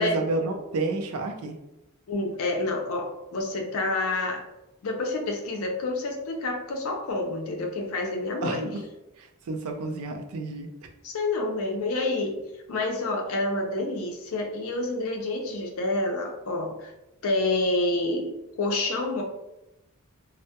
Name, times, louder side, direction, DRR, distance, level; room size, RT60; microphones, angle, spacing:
voice 1, 0.0-1.6 8.4-8.8 9.2-10.7, right 2 dB, 80° right, 5 dB, 0.4 m, -30 dB
voice 2, 2.1-4.5 4.8-8.7 11.0-12.4 12.7-16.9 17.2-19.2, left 2 dB, 70° left, 2 dB, 0.5 m, -28 dB
2.2 x 2.1 x 2.7 m, 0.93 s
head